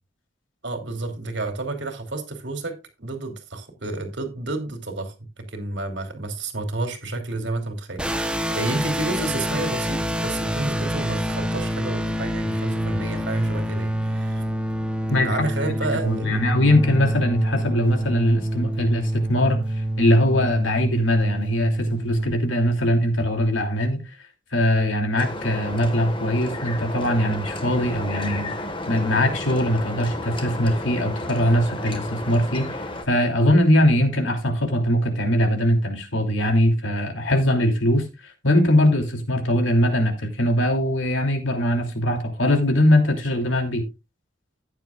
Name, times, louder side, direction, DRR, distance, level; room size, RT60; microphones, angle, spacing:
voice 1, 0.6-14.4 15.2-16.4, right 2 dB, 65° right, 2.8 m, -30 dB
sound 1, 8.0-22.3, equal, 5° right, 0.9 m, -26 dB
voice 2, 16.0-19.6 20.0-24.0 24.5-28.5 28.9-43.8, left 1 dB, 90° left, 2.9 m, -21 dB
sound 2, 25.2-33.0, left 1 dB, 25° left, 1.5 m, -32 dB
14.0 x 9.6 x 2.4 m
head